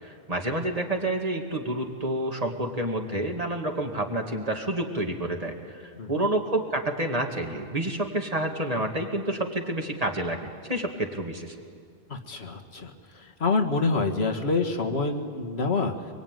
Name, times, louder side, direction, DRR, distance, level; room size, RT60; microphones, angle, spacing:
voice 1, 0.0-11.6, right 1 dB, 35° right, 3 dB, 2.2 m, -29 dB
voice 2, 12.1-15.9, left 3 dB, 80° left, 4 dB, 1.9 m, -27 dB
24.5 x 22.5 x 9.2 m, 2.2 s
omnidirectional pair, 1.1 m